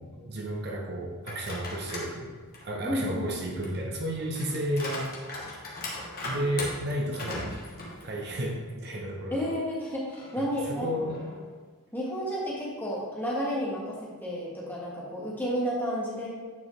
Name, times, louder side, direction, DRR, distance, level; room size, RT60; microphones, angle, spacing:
voice 1, 0.0-2.3 2.6-5.1 6.2-7.6 8.0-9.4 10.4-11.3, equal, 50° right, 0 dB, 0.8 m, -32 dB
sound 1, 1.2-2.1 2.5-8.6 9.0-9.1 10.1-11.6, left 2 dB, 45° left, 1.3 m, -40 dB
voice 2, 2.8-3.2 9.3-10.9 11.9-16.3, equal, 10° left, -5 dB, 1.5 m, -31 dB
9.3 x 4.6 x 3.2 m, 1.4 s
head